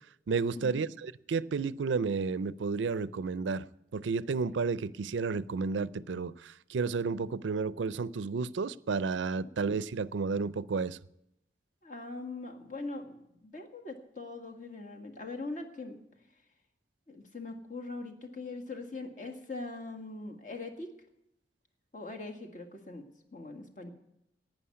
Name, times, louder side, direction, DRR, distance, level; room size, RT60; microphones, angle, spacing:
voice 1, 0.3-3.6 3.9-11.0, right 4 dB, 90° right, 19 dB, 0.5 m, -32 dB
voice 2, 11.8-16.0 17.1-20.9 21.9-23.0 23.3-23.9, left 3 dB, 45° left, 3 dB, 1.9 m, -41 dB
11.5 x 9.1 x 9.6 m, 0.82 s
head